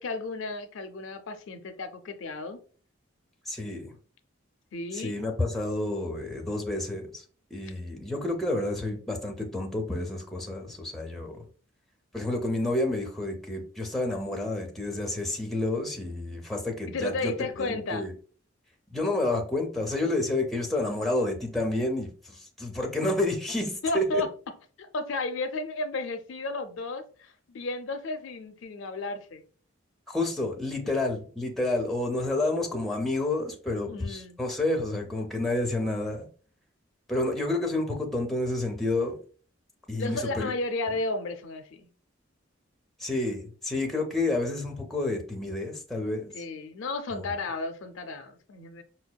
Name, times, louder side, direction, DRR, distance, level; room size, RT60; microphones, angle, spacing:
voice 1, 0.0-2.6 4.7-5.2 16.9-18.1 23.8-24.3 24.8-29.4 33.9-34.4 40.0-41.9 46.3-48.8, left 2 dB, 70° left, 9 dB, 0.4 m, -33 dB
voice 2, 3.5-3.9 4.9-7.2 7.5-11.4 12.1-17.3 17.6-18.1 18.9-24.2 30.1-36.3 37.1-39.2 39.9-40.5 43.0-46.3 47.1-47.3, left 2 dB, ahead, 0 dB, 0.5 m, -29 dB
5.2 x 2.2 x 2.2 m, 0.42 s
head